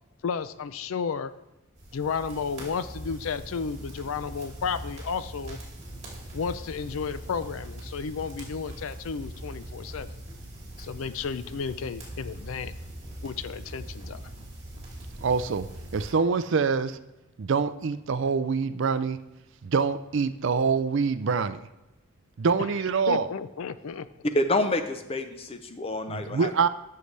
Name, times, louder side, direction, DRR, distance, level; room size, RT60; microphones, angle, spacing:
voice 1, 0.2-1.3 1.9-5.6 6.3-10.2 10.8-12.7 13.2-14.2 22.6-22.7 23.1-24.1, left 6 dB, 70° left, 0.4 m, -32 dB
sound 1, 1.8-16.1, right 1 dB, 30° right, 2.9 m, -41 dB
voice 2, 15.2-17.0 17.4-19.2 19.6-21.6 22.4-23.3 26.1-26.7, right 5 dB, 55° right, 0.4 m, -25 dB
voice 3, 24.3-26.5, left 1 dB, 25° left, 0.6 m, -28 dB
13.0 x 6.6 x 3.3 m
head